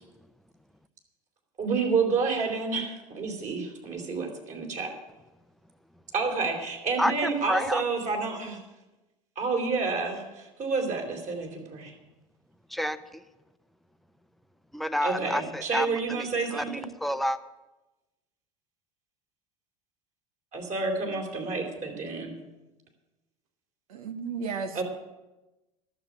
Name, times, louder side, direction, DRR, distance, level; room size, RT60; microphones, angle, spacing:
voice 1, 1.6-4.9 6.1-8.6 9.4-11.9 15.0-16.8 20.5-22.3 24.8-24.9, right 4 dB, 45° right, 3 dB, 3.7 m, -29 dB
voice 2, 7.0-7.8 12.7-13.2 14.7-17.4, equal, ahead, 11 dB, 0.7 m, -29 dB
voice 3, 23.9-24.8, right 5 dB, 85° right, 9 dB, 1.2 m, -34 dB
11.5 x 7.3 x 10.0 m, 1.0 s
hypercardioid pair, 85°, 18 cm